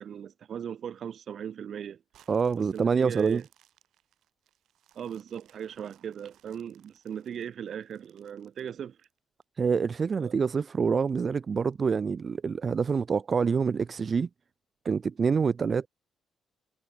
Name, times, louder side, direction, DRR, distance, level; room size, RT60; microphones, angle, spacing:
voice 1, 0.0-2.0 2.6-3.4 4.9-9.0 10.2-10.3, right 8 dB, 60° right, 1.2 m, -38 dB
sound 1, 2.1-9.4 9.9-10.0 10.5-11.7 12.3-12.4, right 12 dB, 75° right, 7.7 m, -65 dB
voice 2, 2.3-3.4 9.6-14.3 14.8-15.9, right 5 dB, 40° right, 0.4 m, -26 dB
cardioid pair, 90°, 0 cm